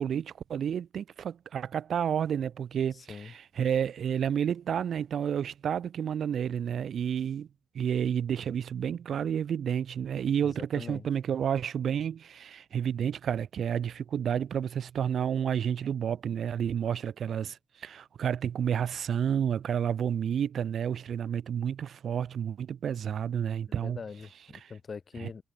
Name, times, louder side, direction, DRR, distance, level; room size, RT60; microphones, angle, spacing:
voice 1, 0.0-7.5 7.7-24.0 24.6-24.7 25.2-25.3, right 8 dB, 60° right, 4.0 m, -30 dB
voice 2, 2.9-3.3 10.4-11.1 23.8-25.4, left 5 dB, 35° left, 5.7 m, -43 dB
wide cardioid pair, 145°, 0 cm